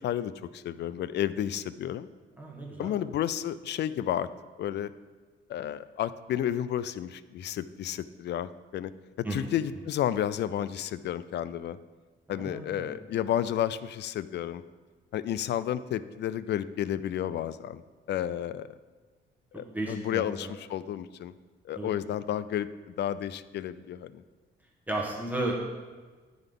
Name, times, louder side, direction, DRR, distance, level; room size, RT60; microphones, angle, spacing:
voice 1, 0.0-2.1 2.8-4.3 4.6-4.9 5.5-8.9 9.2-11.8 12.3-14.6 15.1-17.8 18.1-18.7 19.6-21.3 21.6-24.2, left 11 dB, 60° left, 16 dB, 0.4 m, -31 dB
voice 2, 2.4-2.9 9.2-9.5 12.3-13.0 19.7-20.5 21.7-21.9 24.9-25.5, right 2 dB, 10° right, -2 dB, 1.3 m, -34 dB
9.3 x 3.9 x 5.3 m, 1.4 s
cardioid pair, 90°, 20 cm